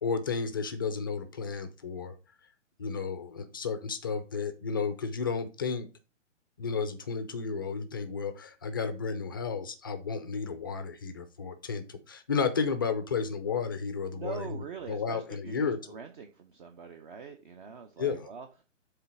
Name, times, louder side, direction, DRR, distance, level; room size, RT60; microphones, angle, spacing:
voice 1, 0.0-2.1 2.8-5.9 6.6-15.8 18.0-18.3, left 5 dB, 20° left, 0.4 m, -32 dB
voice 2, 14.1-18.7, right 6 dB, 45° right, 0.8 m, -43 dB
7.7 x 3.4 x 5.9 m
hypercardioid pair, 140°, 38 cm